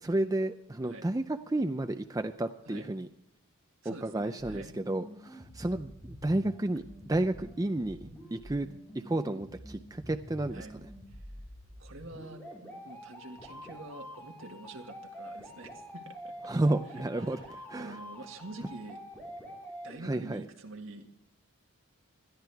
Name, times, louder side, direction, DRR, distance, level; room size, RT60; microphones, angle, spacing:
voice 1, 0.0-3.1 3.8-8.7 8.9-10.7 16.5-17.4 17.7-18.0 20.0-20.4, right 1 dB, 15° right, 7 dB, 0.5 m, -31 dB
voice 2, 3.8-4.7 10.5-10.7 11.8-12.4 12.8-16.5 16.9-19.0 19.8-21.1, right 2 dB, 65° right, 2 dB, 1.9 m, -46 dB
sound 1, 4.4-20.4, equal, 10° left, 4.4 m, -47 dB
21.0 x 13.5 x 3.5 m, 0.80 s
head